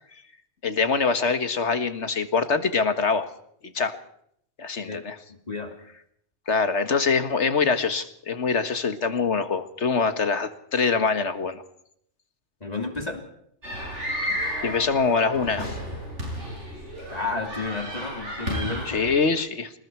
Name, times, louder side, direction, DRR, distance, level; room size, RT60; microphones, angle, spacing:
voice 1, 0.6-3.3 3.7-4.0 4.6-5.2 6.5-11.6 14.2-14.4 14.6-15.8 18.9-19.7, left 5 dB, 75° left, 10 dB, 1.9 m, -24 dB
voice 2, 5.3-5.7 12.6-13.2 17.1-19.0, left 3 dB, 35° left, 4 dB, 3.1 m, -32 dB
sound 1, 13.6-19.1, equal, 85° right, 8.3 m, -32 dB
28.0 x 20.0 x 4.6 m, 0.70 s
omnidirectional pair, 1.2 m